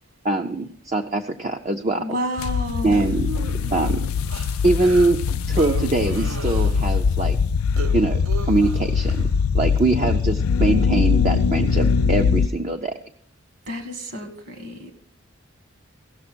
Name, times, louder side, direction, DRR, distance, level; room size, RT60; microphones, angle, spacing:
voice 1, 0.2-2.2 2.8-3.3 3.7-4.1 4.6-5.2 5.5-7.4 7.9-9.3 9.5-12.9, right 2 dB, 30° right, 4 dB, 0.5 m, -23 dB
voice 2, 2.0-3.1 13.7-15.0, left 1 dB, 55° right, 4 dB, 1.6 m, -30 dB
sound 1, 2.4-12.5, left 5 dB, 90° left, 0.4 m, -22 dB
sound 2, 2.9-7.0 7.4-9.3 9.8-10.2, right 4 dB, 80° right, 0.6 m, -36 dB
16.5 x 6.6 x 6.1 m, 0.66 s
head